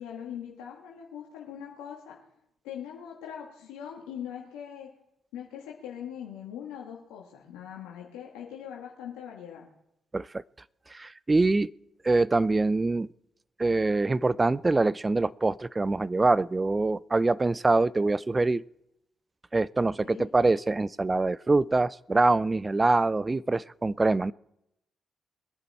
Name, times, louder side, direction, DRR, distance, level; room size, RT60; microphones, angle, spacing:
voice 1, 0.0-2.2 2.6-4.9 5.3-9.7 20.0-20.3, left 9 dB, 85° left, -2 dB, 2.0 m, -41 dB
voice 2, 10.9-11.7 12.0-13.1 13.6-18.6 19.5-24.3, right 3 dB, 30° right, 21 dB, 0.5 m, -24 dB
22.0 x 10.5 x 4.4 m, 0.82 s
hypercardioid pair, 45°, 0 cm